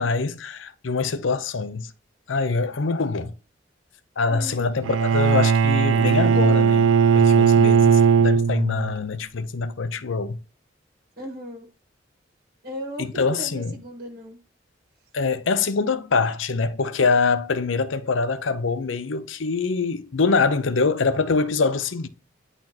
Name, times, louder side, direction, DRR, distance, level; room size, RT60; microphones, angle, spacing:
voice 1, 0.0-1.9 2.3-3.3 4.2-10.4 13.0-13.7 15.1-22.1, left 4 dB, 90° left, 0.7 m, -24 dB
voice 2, 4.3-4.7 11.2-11.7 12.6-14.4, right 1 dB, 50° right, 1.6 m, -36 dB
Bowed string instrument, 4.8-8.9, right 6 dB, 80° right, 0.3 m, -18 dB
10.5 x 4.2 x 2.8 m
head